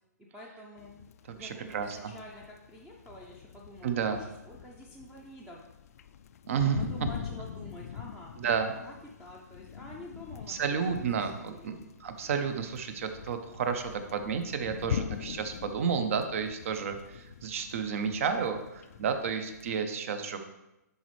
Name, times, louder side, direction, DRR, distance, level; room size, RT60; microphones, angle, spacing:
voice 1, 0.2-0.9 1.3-5.6 6.0-6.1 6.6-8.4 8.8-11.2 11.5-11.9, left 1 dB, 5° right, -3 dB, 0.6 m, -48 dB
sound 1, 0.8-19.8, left 8 dB, 55° left, 0.3 m, -43 dB
voice 2, 1.3-2.1 3.8-4.2 6.5-7.1 8.4-8.7 10.5-11.7 12.0-20.4, right 6 dB, 50° right, 8 dB, 0.8 m, -31 dB
10.5 x 4.2 x 3.2 m, 0.95 s
hypercardioid pair, 150°, 9 cm